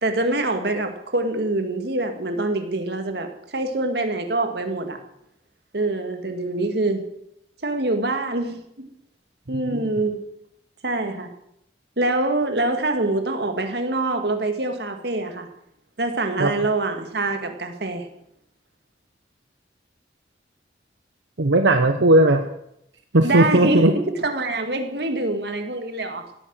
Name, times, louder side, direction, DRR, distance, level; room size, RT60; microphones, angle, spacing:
voice 1, 0.0-5.0 5.7-7.0 7.6-8.9 9.5-10.2 10.8-11.3 12.0-15.5 16.0-18.1 23.2-26.2, right 2 dB, 60° right, 6 dB, 1.9 m, -25 dB
voice 2, 9.5-9.8 16.4-16.5 21.4-22.5 23.1-23.9, right 1 dB, 80° right, 7 dB, 1.0 m, -17 dB
17.0 x 8.9 x 7.6 m, 0.78 s
head